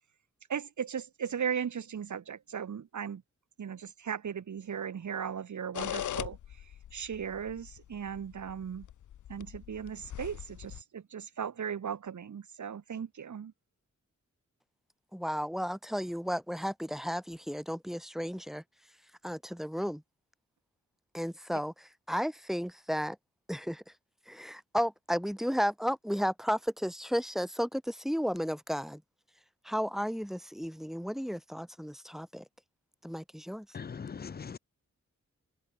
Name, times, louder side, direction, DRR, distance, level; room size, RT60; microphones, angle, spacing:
voice 1, 0.5-3.2 3.6-6.4 6.9-8.9 9.3-13.5, right 7 dB, 75° right, 2.3 m, -37 dB
sound 1, 5.7-10.8, left 11 dB, 85° left, 0.7 m, -41 dB
voice 2, 15.1-18.6 19.2-20.0 21.1-23.2 23.5-23.8 24.3-29.0 29.6-32.4 33.0-33.7, equal, ahead, 0.8 m, -33 dB
voice 3, 33.7-34.6, left 6 dB, 35° left, 0.6 m, -40 dB
wide cardioid pair, 85°, 30 cm